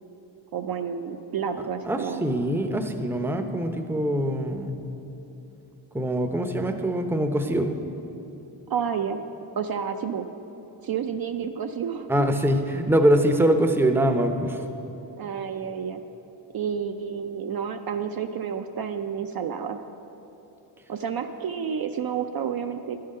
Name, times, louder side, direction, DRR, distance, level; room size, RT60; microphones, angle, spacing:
voice 1, 0.5-2.3 8.7-9.2 9.6-10.3 10.8-12.3 15.2-16.0 16.5-19.8 20.9-23.0, right 7 dB, 50° right, 7 dB, 0.5 m, -30 dB
voice 2, 1.9-4.8 5.9-7.7 12.1-14.6, right 1 dB, 5° right, 6 dB, 0.6 m, -23 dB
11.0 x 3.8 x 5.4 m, 2.9 s
supercardioid pair, 50°, 47 cm